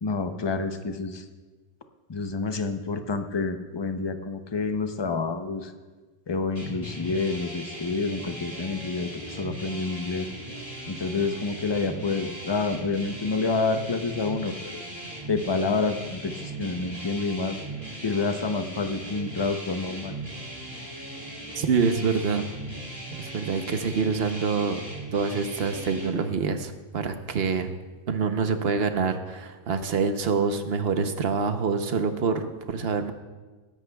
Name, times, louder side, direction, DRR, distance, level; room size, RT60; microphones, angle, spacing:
voice 1, 0.0-1.2 2.1-5.7 6.3-10.3 10.9-14.8 15.3-17.6 18.0-20.2, left 4 dB, 30° left, 8 dB, 0.6 m, -28 dB
sound 1, 6.6-26.1, right 1 dB, 15° right, 2.4 m, -38 dB
voice 2, 21.6-22.5 23.2-24.8 25.1-27.7 28.1-33.1, right 5 dB, 65° right, 8 dB, 1.0 m, -26 dB
21.0 x 11.0 x 2.3 m, 1.3 s
omnidirectional pair, 1.1 m